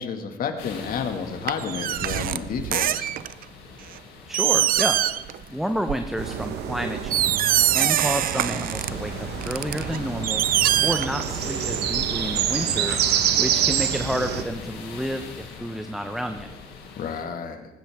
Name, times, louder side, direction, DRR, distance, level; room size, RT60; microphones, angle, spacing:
voice 1, 0.0-3.1 17.0-17.6, left 6 dB, 55° left, 5 dB, 2.1 m, -31 dB
sound 1, 0.6-17.2, left 4 dB, 85° left, 4.7 m, -40 dB
sound 2, 1.5-3.4 4.0-4.1 4.3-5.4 5.7-6.0 6.6-6.7 7.0-8.9 9.4-11.5 11.8-11.9, right 12 dB, 60° right, 0.6 m, -23 dB
voice 2, 4.3-5.0 5.5-10.4 10.8-13.0 13.4-16.5, equal, ahead, 6 dB, 0.9 m, -30 dB
sound 3, 6.2-14.4, right 10 dB, 75° right, 1.2 m, -27 dB
19.0 x 16.5 x 3.6 m, 1.0 s
cardioid pair, 110°, 17 cm